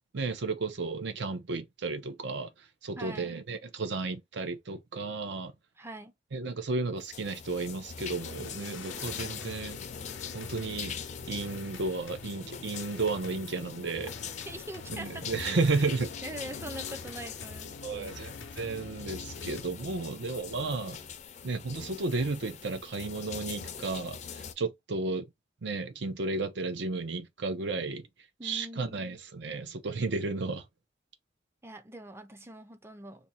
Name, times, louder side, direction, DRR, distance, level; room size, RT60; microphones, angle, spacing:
voice 1, 0.1-2.5 2.8-5.5 6.3-9.8 10.3-11.0 11.3-14.1 14.9-16.1 17.8-21.0 21.4-25.3 25.6-28.1 28.4-30.6, right 3 dB, 70° right, 0.6 m, -33 dB
voice 2, 3.0-3.4 5.8-6.1 8.9-9.1 14.5-15.3 16.2-18.3 28.4-29.1 31.6-33.3, right 1 dB, 15° right, 0.5 m, -43 dB
sound 1, 7.0-24.5, left 7 dB, 40° left, 0.4 m, -42 dB
sound 2, 8.1-19.6, left 4 dB, 90° left, 0.6 m, -46 dB
2.7 x 2.6 x 4.2 m
head